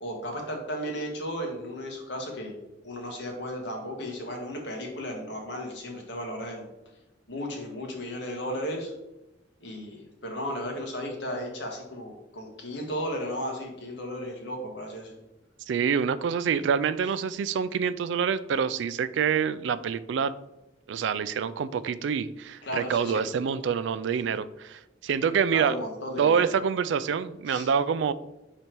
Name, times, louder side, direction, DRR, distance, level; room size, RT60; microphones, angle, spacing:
voice 1, 0.0-2.6 2.8-6.7 7.3-8.9 9.6-15.1 22.6-23.1 25.5-26.4 27.5-27.7, equal, 65° left, 1 dB, 1.4 m, -34 dB
voice 2, 15.7-20.3 20.9-25.7 26.2-28.1, right 7 dB, 70° right, 15 dB, 0.3 m, -26 dB
5.1 x 4.1 x 4.5 m, 0.96 s
head